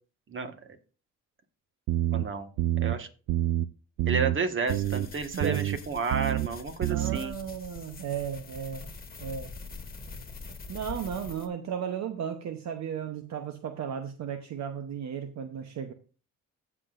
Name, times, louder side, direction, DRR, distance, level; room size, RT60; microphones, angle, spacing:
sound 1, 1.9-2.2 2.6-2.9 3.3-3.6 4.0-4.4 4.7-5.1 5.4-5.8 6.1-6.5 6.8-7.2, right 14 dB, 85° right, 0.5 m, -27 dB
voice 1, 2.1-2.5 2.8-3.1 4.1-7.3, right 5 dB, 40° right, 7 dB, 1.5 m, -31 dB
sound 2, 4.7-11.5, left 4 dB, 30° left, 1.5 m, -44 dB
voice 2, 6.9-8.9 9.2-9.5 10.7-15.9, right 8 dB, 65° right, 7 dB, 0.9 m, -35 dB
15.5 x 6.1 x 2.5 m, 0.36 s
cardioid pair, 90°, 30 cm